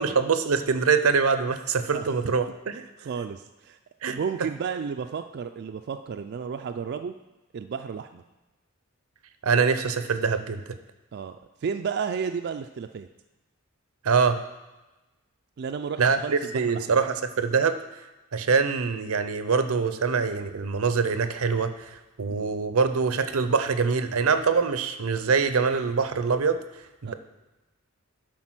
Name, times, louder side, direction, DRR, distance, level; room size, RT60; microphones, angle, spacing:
voice 1, 0.0-2.8 4.0-4.2 9.4-10.6 14.0-14.4 16.0-17.8 18.3-26.6 27.0-27.1, right 5 dB, 85° right, 10 dB, 0.6 m, -24 dB
voice 2, 1.9-2.3 2.7-3.8 4.1-7.1 7.5-8.2 11.1-13.1 15.6-17.0 22.3-22.5 27.0-27.1, right 6 dB, 50° right, 7 dB, 0.3 m, -33 dB
10.5 x 4.0 x 6.0 m, 1.1 s
head